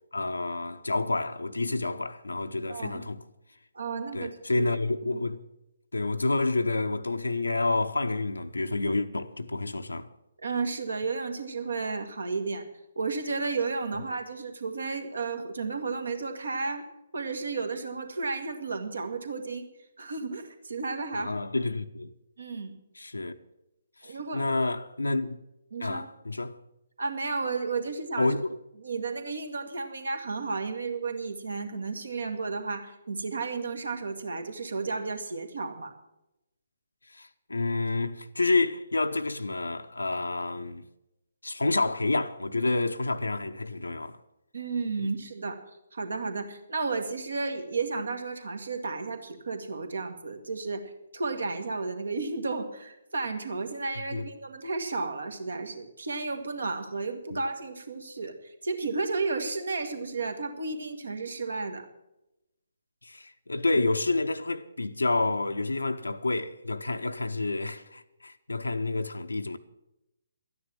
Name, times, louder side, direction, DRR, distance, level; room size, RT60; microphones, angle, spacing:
voice 1, 0.1-3.2 4.1-5.4 5.9-10.1 21.1-22.1 22.9-23.4 24.0-25.4 25.8-26.6 28.2-28.6 37.1-40.8 41.4-44.2 45.0-45.1 54.0-54.3 57.3-57.4 63.0-69.6, left 2 dB, 75° left, 0.7 m, -29 dB
voice 2, 2.7-3.0 3.7-4.7 10.4-12.7 13.0-16.8 17.1-19.6 20.0-21.3 22.4-22.7 24.0-24.5 25.7-26.1 27.0-28.3 28.8-35.9 44.5-45.6 45.9-50.8 51.1-61.8, right 4 dB, 65° right, 1.7 m, -33 dB
12.5 x 9.8 x 7.2 m
figure-of-eight pair, 135°, 0 cm